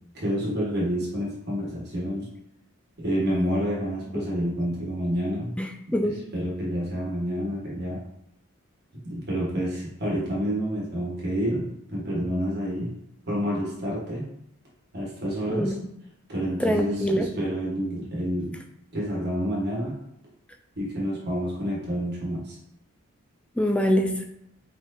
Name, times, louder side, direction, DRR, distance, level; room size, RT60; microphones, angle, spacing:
voice 1, 0.1-2.3 3.0-5.5 6.0-8.0 9.0-12.9 13.3-14.3 14.9-15.8 16.3-18.6 18.9-20.0 20.8-22.6, equal, 50° right, -4 dB, 1.3 m, -28 dB
voice 2, 5.6-6.2 15.5-15.7 16.6-17.3 23.6-24.2, equal, 5° left, 4 dB, 0.3 m, -24 dB
4.4 x 4.3 x 2.7 m, 0.79 s
head